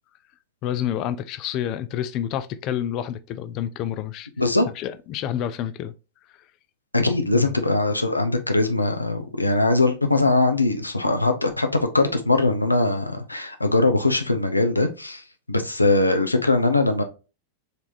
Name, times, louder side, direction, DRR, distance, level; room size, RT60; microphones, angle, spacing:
voice 1, 0.6-4.3 4.8-5.9 7.3-7.5, left 10 dB, 40° left, 0.4 m, -28 dB
voice 2, 6.9-17.0, left 2 dB, 85° left, 0.6 m, -21 dB
4.1 x 3.4 x 2.5 m
figure-of-eight pair, 90°, 0 cm